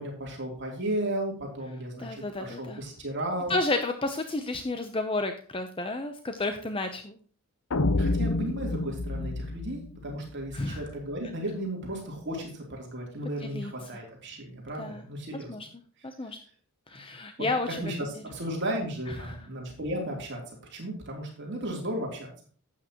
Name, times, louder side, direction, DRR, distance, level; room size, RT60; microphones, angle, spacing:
voice 1, 0.0-3.5 8.0-15.5 17.4-22.5, right 1 dB, 50° right, -1 dB, 3.3 m, -35 dB
voice 2, 2.0-2.8 3.5-7.1 10.5-10.9 13.4-14.0 14.8-15.0 15.5-15.7 16.0-16.4 16.9-17.8 19.2-19.4, left 2 dB, 25° left, 7 dB, 0.7 m, -31 dB
sound 1, 7.7-10.8, left 2 dB, 65° left, 0.7 m, -29 dB
12.0 x 8.6 x 3.0 m, 0.44 s
head